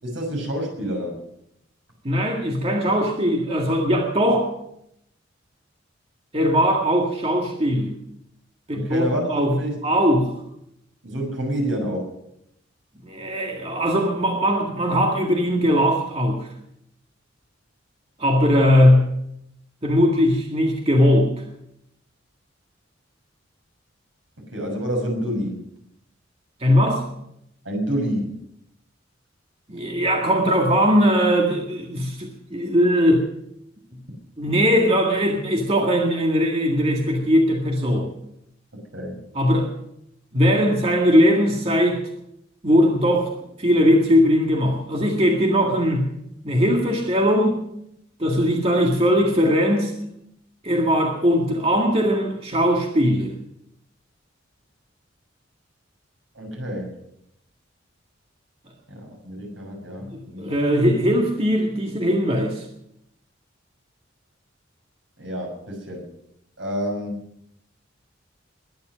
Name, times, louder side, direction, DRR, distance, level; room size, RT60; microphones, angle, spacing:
voice 1, 0.0-1.2 8.7-9.8 11.0-12.1 24.4-25.6 27.6-28.3 38.9-39.2 56.3-56.9 58.9-60.5 60.8-60.9 65.2-66.1 66.6-67.2, equal, 75° right, 2 dB, 6.4 m, -28 dB
voice 2, 2.0-4.5 6.3-8.0 8.7-9.6 9.8-10.3 13.0-16.5 18.2-19.1 19.8-21.4 26.6-27.0 29.7-33.2 34.4-38.1 39.3-39.7 40.3-42.0 42.6-43.3 43.6-46.1 46.5-47.6 48.2-49.9 50.6-53.3 60.0-62.7, equal, 30° right, 1 dB, 1.9 m, -20 dB
21.0 x 10.5 x 6.3 m, 0.78 s
head